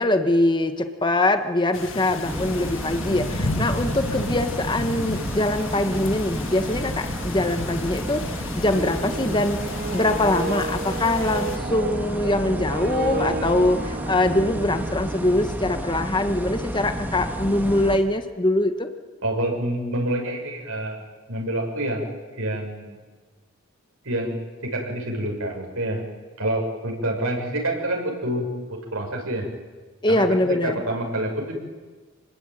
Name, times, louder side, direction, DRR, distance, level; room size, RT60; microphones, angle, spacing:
voice 1, 0.0-9.6 9.9-18.9 30.0-30.8, left 1 dB, 20° left, 8 dB, 1.3 m, -23 dB
sound 1, 1.7-11.6, left 2 dB, 60° left, 1.9 m, -33 dB
sound 2, 2.2-18.0, equal, 10° right, 1.9 m, -31 dB
sound 3, 8.7-15.6, right 3 dB, 45° right, 0.7 m, -32 dB
voice 2, 19.2-22.1 22.4-23.0 24.0-26.0 26.4-29.5 30.1-30.2 30.6-31.5, right 1 dB, 75° right, 1 dB, 6.5 m, -27 dB
29.0 x 20.5 x 9.2 m, 1.4 s
head